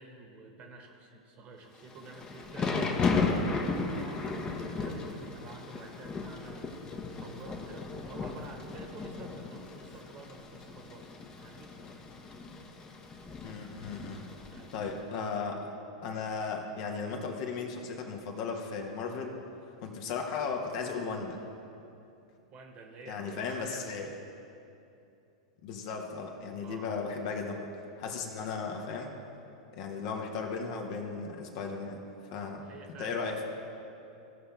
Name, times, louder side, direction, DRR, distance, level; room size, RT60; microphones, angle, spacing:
voice 1, 0.0-6.9 7.2-11.1 11.4-11.7 14.5-14.7 22.5-23.9 26.6-26.9 28.4-28.6 32.6-33.4, right 3 dB, 40° right, 3 dB, 1.4 m, -50 dB
Thunder / Rain, 1.8-14.9, left 4 dB, 25° left, 1.0 m, -35 dB
voice 2, 13.4-14.2 14.7-15.7 16.0-19.3 19.8-21.4 23.1-24.1 25.6-27.7 28.0-29.1 29.7-32.0 32.3-32.7 33.0-33.4, left 5 dB, 55° left, 2 dB, 1.4 m, -36 dB
16.5 x 5.7 x 3.4 m, 2.7 s
hypercardioid pair, 100°, 3 cm